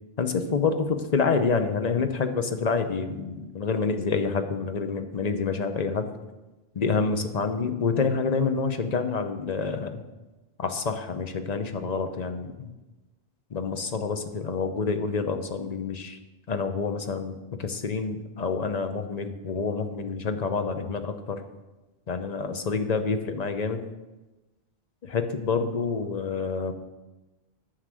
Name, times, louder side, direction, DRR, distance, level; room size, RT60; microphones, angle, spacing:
voice 1, 0.2-6.1 6.7-10.0 10.6-12.7 13.5-16.2 16.5-21.4 22.1-23.8 25.0-26.7, left 5 dB, 40° left, 8 dB, 0.9 m, -27 dB
9.7 x 6.7 x 7.6 m, 1.1 s
omnidirectional pair, 1.1 m